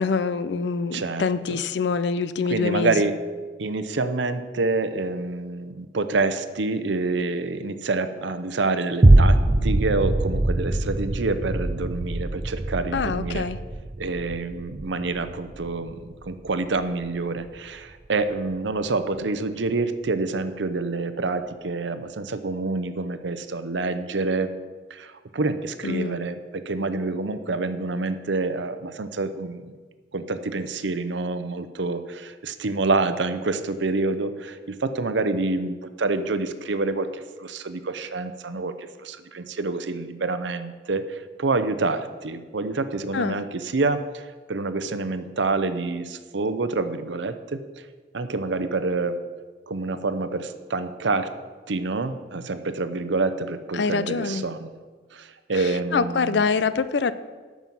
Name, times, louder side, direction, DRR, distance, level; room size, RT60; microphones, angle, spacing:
voice 1, 0.0-3.1 12.9-13.6 25.8-26.2 43.1-43.4 53.7-54.4 55.5-57.1, left 5 dB, 70° left, 14 dB, 0.5 m, -25 dB
voice 2, 0.9-1.6 2.5-3.2 3.6-13.5 14.0-24.5 24.9-29.7 30.1-38.7 39.0-47.6 48.1-49.2 49.7-51.3 51.7-54.8 55.1-56.5, right 3 dB, 80° right, 10 dB, 0.7 m, -27 dB
sound 1, 9.0-17.6 18.1-18.2, right 1 dB, 30° right, 0.5 m, -23 dB
9.2 x 6.2 x 7.3 m, 1.4 s
head